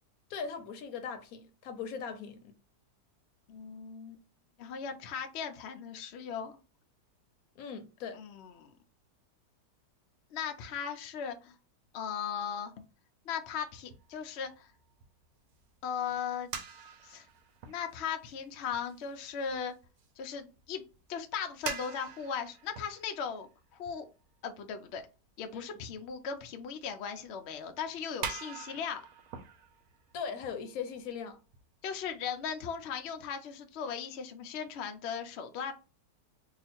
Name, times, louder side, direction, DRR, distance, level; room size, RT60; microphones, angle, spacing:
voice 1, 0.3-2.5 7.6-8.2 25.5-25.6 30.1-31.4, left 6 dB, 65° left, 1.0 m, -39 dB
voice 2, 3.5-4.2 4.6-6.5 8.1-8.7 10.3-11.5 11.9-12.8 13.3-14.7 15.8-16.5 17.0-17.3 17.7-19.7 20.2-20.8 21.1-24.1 24.4-25.0 25.4-29.0 31.8-35.7, left 7 dB, 85° left, 0.5 m, -38 dB
sound 1, 13.4-21.0 21.3-24.5 25.0-25.1 25.9-26.4 26.7-26.8 27.2-27.3 27.8-27.9 28.2-31.2 31.5-31.6 32.1-32.2 32.4-33.3, right 6 dB, 70° right, 1.0 m, -45 dB
2.8 x 2.4 x 4.2 m
omnidirectional pair, 1.8 m